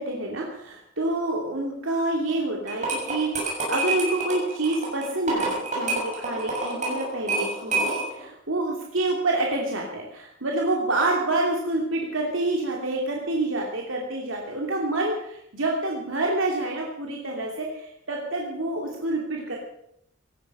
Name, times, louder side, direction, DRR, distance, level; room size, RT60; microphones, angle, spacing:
voice 1, 0.0-19.6, right 2 dB, 75° right, -1 dB, 2.8 m, -27 dB
sound 1, 2.7-8.2, right 2 dB, 40° right, 7.1 m, -28 dB
18.0 x 13.5 x 5.6 m, 0.73 s
head